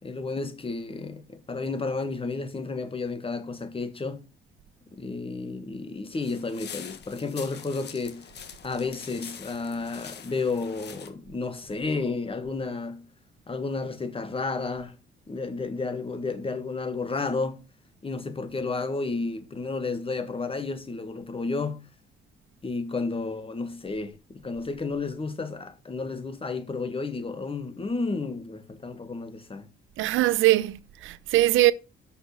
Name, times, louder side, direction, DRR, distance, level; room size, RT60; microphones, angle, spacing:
voice 1, 0.0-4.2 4.9-8.3 8.6-13.1 13.5-15.0 15.3-17.7 18.0-21.8 22.6-29.7, left 3 dB, 25° left, 1.6 m, -32 dB
sound 1, 6.1-11.1, left 7 dB, 60° left, 1.4 m, -44 dB
voice 2, 30.0-31.7, right 16 dB, 85° right, 0.6 m, -21 dB
6.3 x 5.9 x 6.4 m
cardioid pair, 90°, 20 cm